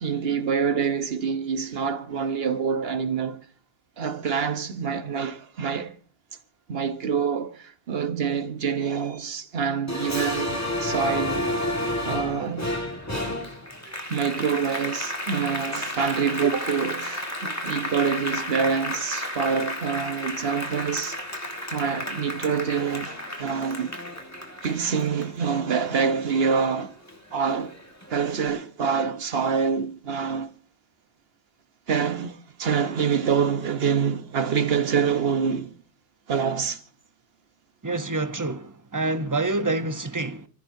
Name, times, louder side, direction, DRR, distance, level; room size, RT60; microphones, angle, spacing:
voice 1, 0.0-3.5 4.0-6.0 6.7-11.7 12.0-12.7 14.1-21.2 21.7-23.9 24.6-27.0 27.3-27.8 28.1-30.5 31.9-35.7 36.3-36.8, right 6 dB, 55° right, 1.2 m, -26 dB
Applause, 9.9-26.7 27.1-28.3, left 1 dB, 15° left, 1.8 m, -32 dB
voice 2, 37.8-40.5, right 2 dB, 20° right, 0.7 m, -27 dB
28.5 x 15.0 x 2.7 m
omnidirectional pair, 1.3 m